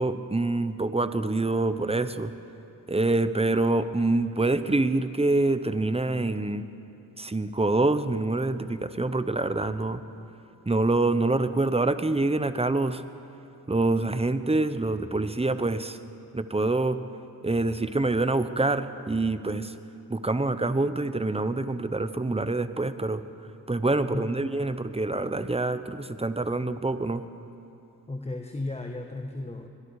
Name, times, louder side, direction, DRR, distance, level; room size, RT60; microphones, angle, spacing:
voice 1, 0.0-2.3 2.9-6.6 7.2-10.0 10.7-13.0 13.7-16.0 16.3-17.0 17.4-19.8 20.1-23.2 23.7-27.2, right 2 dB, 15° right, 11 dB, 1.0 m, -26 dB
voice 2, 28.1-29.7, left 2 dB, 15° left, 4 dB, 1.3 m, -34 dB
24.0 x 22.0 x 4.9 m, 2.8 s
cardioid pair, 65°, 37 cm